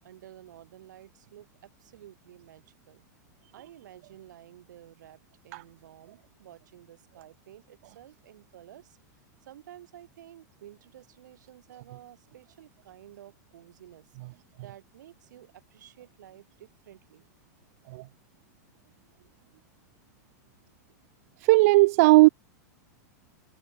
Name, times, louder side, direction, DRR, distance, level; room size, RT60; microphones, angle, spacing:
voice 1, 0.0-3.0 3.5-9.0 9.4-17.3, right 12 dB, 85° right, 6.8 m, -52 dB
voice 2, 21.4-22.3, right 22 dB, 55° right, 0.4 m, -17 dB
supercardioid pair, 145°, 10 cm